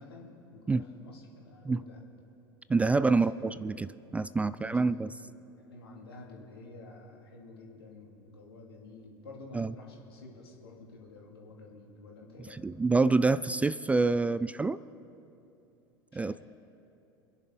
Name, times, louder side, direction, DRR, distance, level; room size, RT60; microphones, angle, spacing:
voice 1, 0.0-2.0 3.0-3.6 4.3-12.7 16.1-16.4, left 2 dB, 75° left, -2 dB, 3.1 m, -50 dB
voice 2, 2.7-3.9 4.1-5.1 9.5-9.7 12.6-14.8 16.1-16.4, right 3 dB, 10° right, 16 dB, 0.3 m, -26 dB
27.0 x 10.5 x 3.9 m, 2.7 s
figure-of-eight pair, 80°, 13 cm